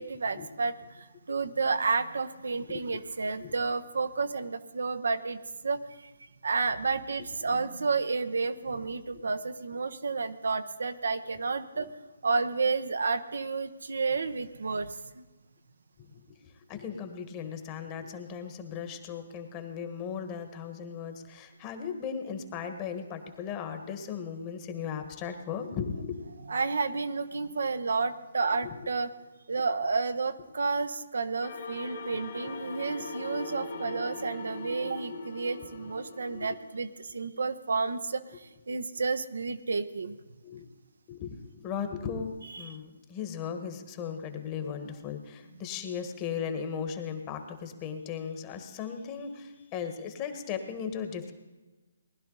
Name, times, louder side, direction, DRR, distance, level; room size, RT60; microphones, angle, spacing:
voice 1, 0.0-6.1 6.4-11.9 12.2-15.2 26.5-29.1 29.5-40.2 42.5-42.7, right 4 dB, 75° right, 10 dB, 0.8 m, -31 dB
voice 2, 16.7-26.2 28.6-28.7 36.3-36.5 40.4-40.7 41.1-51.3, left 7 dB, 25° left, 6 dB, 1.5 m, -37 dB
sound 1, 31.4-36.8, left 2 dB, 55° left, 2.8 m, -41 dB
19.5 x 11.5 x 4.0 m, 1.2 s
hypercardioid pair, 145°, 0 cm